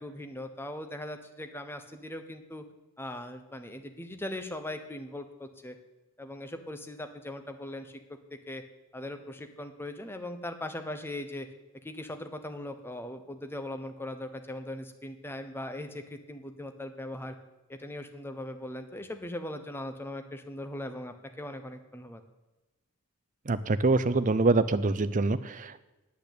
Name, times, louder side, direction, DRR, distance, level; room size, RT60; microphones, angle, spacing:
voice 1, 0.0-2.6 3.0-5.8 6.2-8.0 8.5-8.6 8.9-11.5 11.8-17.3 17.7-22.2, left 1 dB, 10° left, 7 dB, 0.9 m, -39 dB
voice 2, 23.5-25.8, right 3 dB, 35° right, 13 dB, 0.6 m, -25 dB
8.8 x 8.4 x 8.5 m, 1.1 s
head